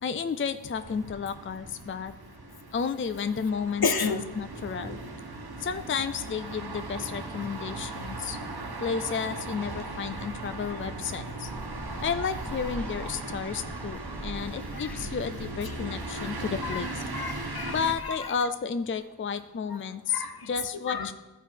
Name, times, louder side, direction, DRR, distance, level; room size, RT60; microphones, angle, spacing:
voice 1, 0.0-2.1 2.7-3.9 4.4-5.0 5.6-8.4 8.8-11.5 12.0-17.0 17.7-21.1, left 6 dB, 35° left, 11 dB, 0.4 m, -32 dB
sound 1, 0.7-17.9, right 3 dB, 70° right, 1.2 m, -38 dB
voice 2, 3.8-4.2 14.7-14.9 15.6-15.7 16.6-18.4 20.1-21.1, left 4 dB, 65° left, 8 dB, 0.8 m, -32 dB
sound 2, 11.5-18.0, equal, 5° left, 0.9 m, -44 dB
13.5 x 5.0 x 4.6 m, 1.1 s
wide cardioid pair, 40°, 39 cm